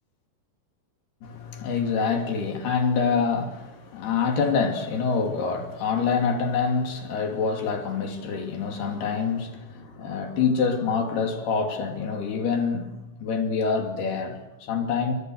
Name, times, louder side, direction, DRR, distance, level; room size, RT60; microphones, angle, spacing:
voice 1, 1.2-15.1, left 5 dB, 60° left, 4.6 m, -26 dB
29.5 x 24.0 x 7.8 m
omnidirectional pair, 5.4 m